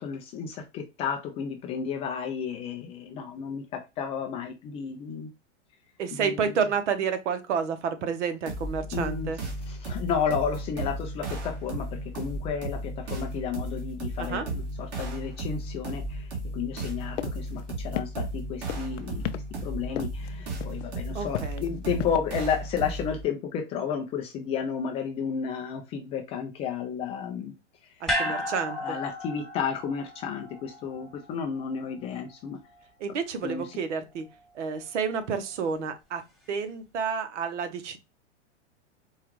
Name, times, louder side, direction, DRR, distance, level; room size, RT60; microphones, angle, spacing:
voice 1, 0.0-5.3 6.1-6.6 8.9-9.3 9.7-27.5 28.2-32.6 33.4-33.8, left 7 dB, 20° left, 0.3 m, -32 dB
voice 2, 6.0-9.4 14.2-14.4 21.1-21.6 28.0-29.0 33.0-34.3 34.5-36.2 36.5-38.0, right 6 dB, 75° right, 0.9 m, -30 dB
sound 1, 8.5-23.2, right 1 dB, 40° right, 1.9 m, -35 dB
sound 2, 17.2-17.3 17.6-17.7 18.0-18.4 18.7-19.4 20.0-20.3 20.6-20.9 21.3-22.2, left 11 dB, 85° left, 0.5 m, -32 dB
sound 3, 28.1-32.4 32.7-32.8, equal, ahead, 1.2 m, -34 dB
4.7 x 2.3 x 3.0 m
hypercardioid pair, 130°, 36 cm